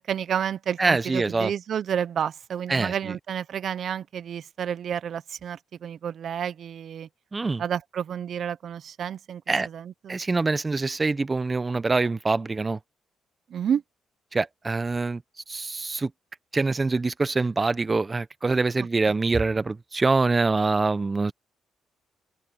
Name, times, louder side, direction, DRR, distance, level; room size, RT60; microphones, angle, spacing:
voice 1, 0.0-7.1 7.6-10.1 13.5-13.8, right 8 dB, 60° right, 0.7 m, -30 dB
voice 2, 0.8-1.5 2.7-2.9 7.3-7.6 9.5-9.7 10.1-12.8 14.3-15.2 15.5-16.1 16.5-21.3, right 3 dB, 25° right, 0.8 m, -24 dB
open air
cardioid pair, 90°, 0 cm